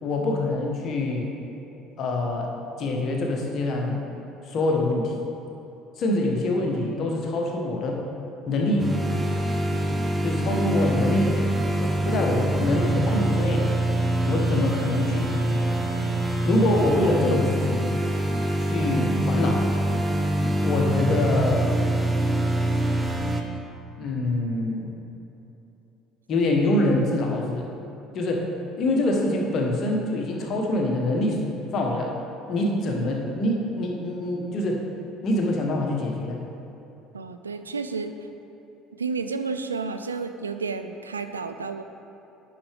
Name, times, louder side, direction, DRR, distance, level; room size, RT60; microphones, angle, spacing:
voice 1, 0.0-1.3 2.0-2.5 2.8-4.0 4.4-5.1 6.0-8.0 8.5-8.9 9.8-11.4 11.8-13.7 14.2-15.3 16.4-17.9 18.6-19.7 20.6-21.7 24.0-24.9 26.3-27.7 28.1-28.5 28.8-31.4 31.7-32.1 32.5-34.8 35.2-36.4, left 2 dB, 50° left, 0 dB, 1.2 m, -25 dB
sound 1, 8.8-23.4, right 1 dB, 15° right, 0.8 m, -24 dB
voice 2, 37.1-38.2 39.0-41.8, right 4 dB, 85° right, 8 dB, 0.3 m, -31 dB
10.0 x 5.9 x 3.4 m, 3.0 s
figure-of-eight pair, 60°, 0 cm